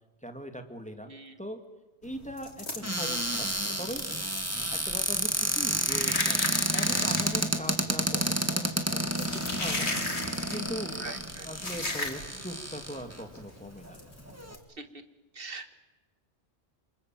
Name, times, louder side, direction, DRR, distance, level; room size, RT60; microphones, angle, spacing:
voice 1, 0.2-1.1 1.4-1.6 2.0-3.5 3.8-4.1 4.6-9.9 10.5-11.1 11.4-14.0, equal, 5° left, 6 dB, 2.2 m, -40 dB
sound 1, 2.0-12.5 12.8-13.0 13.3-13.5 13.9-14.6, left 2 dB, 70° left, 3.4 m, -36 dB
Cupboard open or close, 2.8-13.2 13.9-14.0 14.2-14.5, right 1 dB, 15° right, 1.8 m, -30 dB
voice 2, 11.0-11.5 14.8-14.9 15.3-15.7, right 3 dB, 55° right, 8 dB, 1.8 m, -42 dB
28.0 x 26.5 x 7.7 m, 1.1 s
omnidirectional pair, 1.2 m